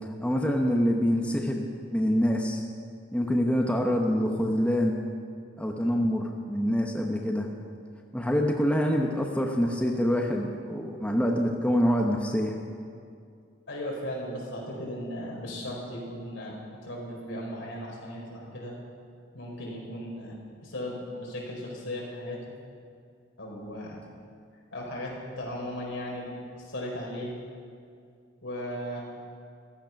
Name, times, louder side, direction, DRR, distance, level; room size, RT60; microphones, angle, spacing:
voice 1, 0.2-1.7 1.9-2.6 3.1-5.0 5.6-7.5 8.1-12.5, equal, 5° left, 1 dB, 1.0 m, -25 dB
voice 2, 13.7-18.7 19.3-20.4 20.6-22.4 23.4-24.0 24.7-27.3 28.4-29.0, left 1 dB, 75° left, -3 dB, 4.5 m, -36 dB
15.0 x 13.5 x 5.9 m, 2.3 s
head